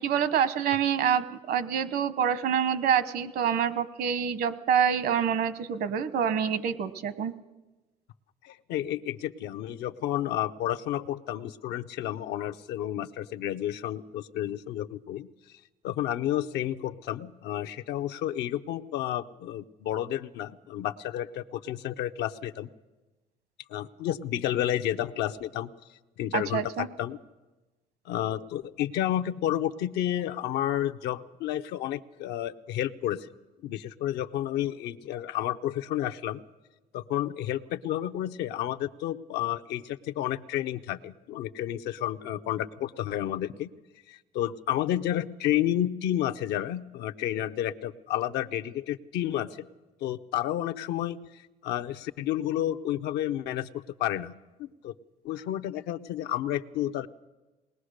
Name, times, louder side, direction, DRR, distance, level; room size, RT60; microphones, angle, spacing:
voice 1, 0.0-7.3 26.3-26.9, right 8 dB, 70° right, 14 dB, 1.1 m, -26 dB
voice 2, 8.4-15.3 15.8-22.7 23.7-25.7 26.2-27.2 28.1-33.3 33.6-36.4 36.9-43.7 44.1-49.7 50.0-54.3 54.6-54.9 55.2-57.1, left 12 dB, 85° left, 8 dB, 0.7 m, -31 dB
20.5 x 20.0 x 6.5 m, 1.1 s
cardioid pair, 110°, 17 cm